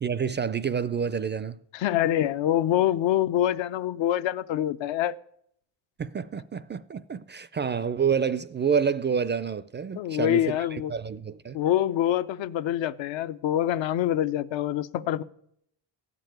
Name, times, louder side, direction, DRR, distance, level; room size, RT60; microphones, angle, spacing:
voice 1, 0.0-1.6 6.0-11.6, right 6 dB, 25° right, 0.4 m, -28 dB
voice 2, 1.7-5.1 9.9-10.9 11.5-15.2, left 12 dB, 75° left, 0.8 m, -25 dB
14.5 x 5.3 x 9.2 m
cardioid pair, 95°, 46 cm